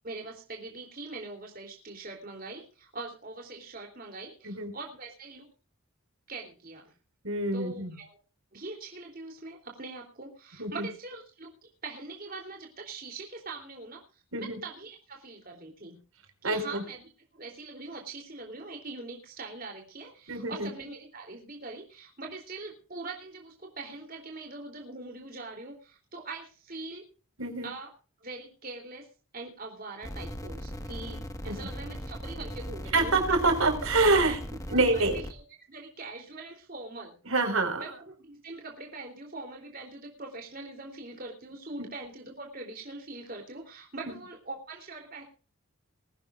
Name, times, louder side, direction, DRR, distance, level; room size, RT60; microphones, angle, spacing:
voice 1, 0.0-5.5 6.3-6.9 7.5-8.2 8.5-16.0 16.4-17.0 17.3-27.1 27.6-27.9 28.2-29.1 29.3-33.2 34.3-34.4 34.7-35.4 35.7-37.2 37.8-45.2, right 3 dB, 40° right, 1 dB, 3.3 m, -42 dB
voice 2, 7.2-7.9 10.6-10.9 14.3-14.6 16.4-16.8 20.3-20.7 27.4-27.7 31.4-31.6 32.9-34.4 34.7-35.2 37.2-37.8, right 2 dB, 75° right, 6 dB, 4.9 m, -26 dB
sound 1, 30.0-35.3, equal, 15° left, 1.5 m, -38 dB
21.5 x 16.5 x 2.5 m, 0.37 s
head